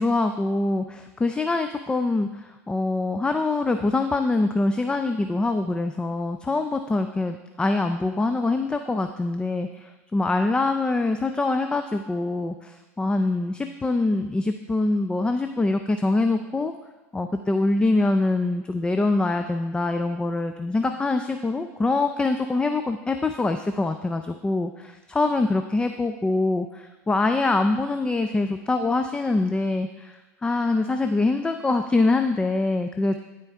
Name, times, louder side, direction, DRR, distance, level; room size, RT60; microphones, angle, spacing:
voice 1, 0.0-16.7 17.1-33.2, left 2 dB, 10° left, 7 dB, 0.4 m, -24 dB
12.0 x 4.5 x 3.6 m, 1.2 s
hypercardioid pair, 100°, 9 cm